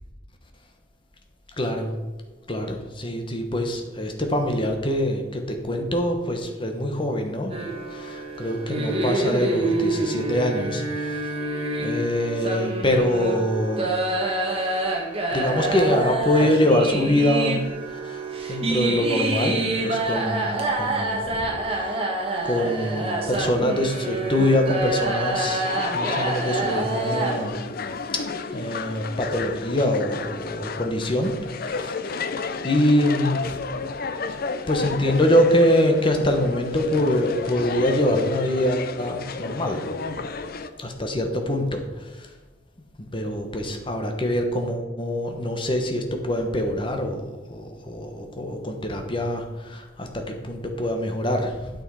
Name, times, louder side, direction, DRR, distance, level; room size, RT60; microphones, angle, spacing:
voice 1, 1.6-1.9 2.5-7.5 7.9-11.4 11.8-13.9 15.3-17.6 17.9-18.2 18.5-22.0 22.4-27.6 28.1-28.2 28.5-32.2 32.6-33.6 34.7-39.8 40.8-42.3 43.0-51.7, left 1 dB, 25° left, 4 dB, 1.1 m, -24 dB
sound 1, 7.5-27.5, right 2 dB, 30° right, 1.4 m, -27 dB
sound 2, 25.4-40.7, left 4 dB, 50° left, 0.5 m, -32 dB
8.9 x 6.5 x 4.8 m, 1.3 s
head